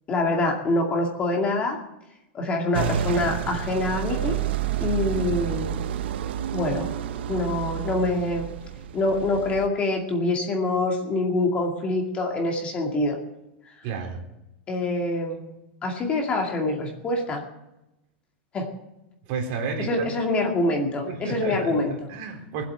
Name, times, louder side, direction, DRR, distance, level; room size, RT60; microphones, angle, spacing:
voice 1, 0.1-1.8 2.3-4.4 4.8-5.7 6.5-6.9 7.3-8.5 8.9-13.2 14.7-15.4 15.8-17.4 18.5-18.7 19.8-22.1, left 2 dB, 20° left, 1 dB, 2.2 m, -25 dB
sound 1, 2.7-9.7, right 10 dB, 75° right, 0.9 m, -29 dB
voice 2, 13.8-14.2 19.3-20.0 21.1-21.8 22.1-22.6, right 5 dB, 45° right, 3 dB, 3.4 m, -31 dB
21.5 x 8.1 x 7.8 m, 0.93 s
supercardioid pair, 165°, 6 cm